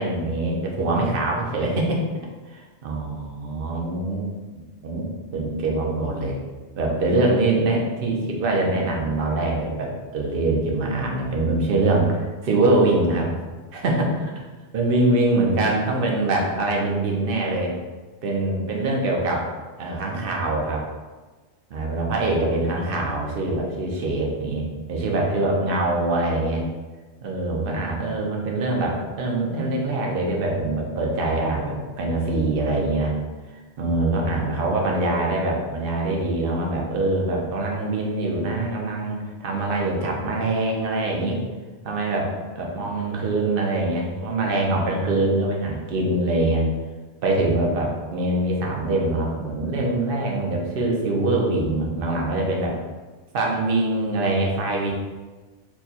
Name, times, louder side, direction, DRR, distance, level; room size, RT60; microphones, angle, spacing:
voice 1, 0.0-2.0 2.5-4.3 4.8-5.1 5.3-6.4 6.8-13.3 13.7-14.3 14.7-17.7 18.2-19.5 19.8-20.8 21.7-26.6 27.2-33.1 33.5-41.4 41.8-46.6 47.2-52.7 53.3-54.9, right 2 dB, 55° right, -1 dB, 0.8 m, -24 dB
4.5 x 2.2 x 2.8 m, 1.3 s
omnidirectional pair, 1.2 m